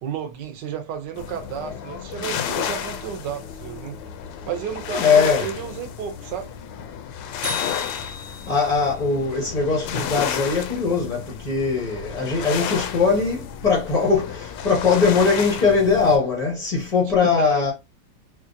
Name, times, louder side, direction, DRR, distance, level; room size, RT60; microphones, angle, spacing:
voice 1, 0.0-4.0 4.5-6.5 17.2-17.7, right 8 dB, 70° right, 1.1 m, -32 dB
sound 1, 1.2-16.2, left 8 dB, 75° left, 1.1 m, -32 dB
voice 2, 4.9-5.5 8.5-17.7, left 5 dB, 50° left, 0.4 m, -21 dB
sound 2, 7.4-8.8, left 2 dB, 45° right, 1.0 m, -34 dB
4.3 x 2.4 x 2.6 m
omnidirectional pair, 2.4 m